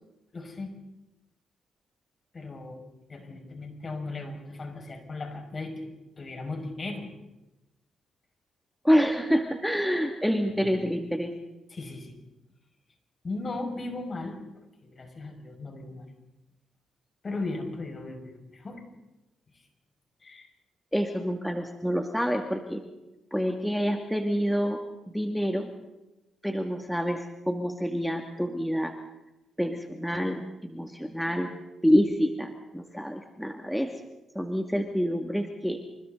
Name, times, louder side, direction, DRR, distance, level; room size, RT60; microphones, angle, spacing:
voice 1, 0.3-0.7 2.3-2.8 3.1-7.1 10.6-10.8 11.7-12.2 13.2-16.0 17.2-18.8 19.5-19.6 20.2-20.5, left 2 dB, 40° left, 3 dB, 6.0 m, -37 dB
voice 2, 8.8-11.3 20.9-22.8 23.3-24.8 25.1-25.7 26.4-28.9 29.6-31.5 31.8-33.9 34.3-35.8, equal, ahead, 3 dB, 2.3 m, -27 dB
28.5 x 26.0 x 4.0 m, 0.99 s
supercardioid pair, 55°, 0 cm